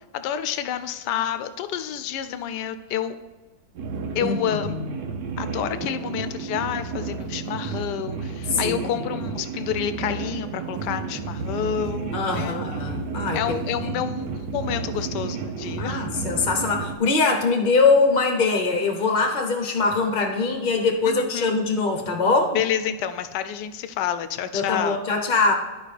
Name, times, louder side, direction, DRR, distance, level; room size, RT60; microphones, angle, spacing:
voice 1, 0.1-3.1 4.1-4.8 5.4-12.6 13.3-16.0 21.0-21.6 22.5-25.0, left 9 dB, 85° left, 11 dB, 1.2 m, -29 dB
sound 1, 3.8-17.0, right 4 dB, 85° right, 1.3 m, -31 dB
voice 2, 4.1-4.8 8.5-8.9 12.1-14.0 15.8-22.6 24.5-25.5, left 4 dB, 40° left, 3 dB, 0.8 m, -23 dB
12.0 x 5.0 x 3.3 m, 1.3 s
omnidirectional pair, 1.8 m